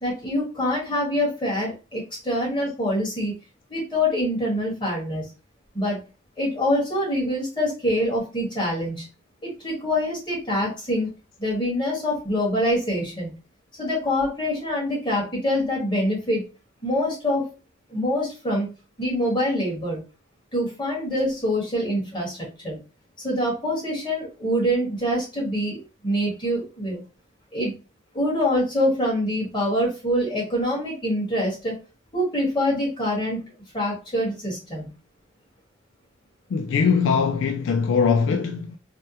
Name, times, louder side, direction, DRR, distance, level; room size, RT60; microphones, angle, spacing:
voice 1, 0.0-3.3 3.7-5.2 5.7-6.0 6.4-9.0 9.4-11.1 11.4-13.3 13.8-16.5 16.8-17.5 17.9-18.7 19.0-20.0 20.5-22.8 23.2-27.0 27.5-27.7 28.1-31.8 32.1-33.4 33.7-34.9, left 1 dB, 20° left, 1.6 m, -25 dB
voice 2, 36.5-38.8, left 5 dB, 65° left, 0.3 m, -21 dB
3.3 x 2.2 x 2.8 m
head